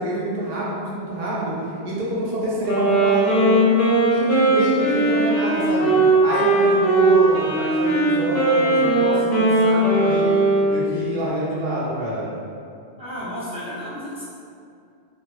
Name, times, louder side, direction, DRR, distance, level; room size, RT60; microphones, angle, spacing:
voice 1, 0.0-1.5 1.8-10.3 10.7-12.3, right 1 dB, 70° right, -7 dB, 0.8 m, -26 dB
Wind instrument woodwind instrument, 2.7-10.9, right 2 dB, 60° left, 0.7 m, -18 dB
voice 2, 13.0-14.2, equal, 10° right, -11 dB, 0.3 m, -32 dB
2.6 x 2.0 x 2.3 m, 2.4 s
omnidirectional pair, 1.1 m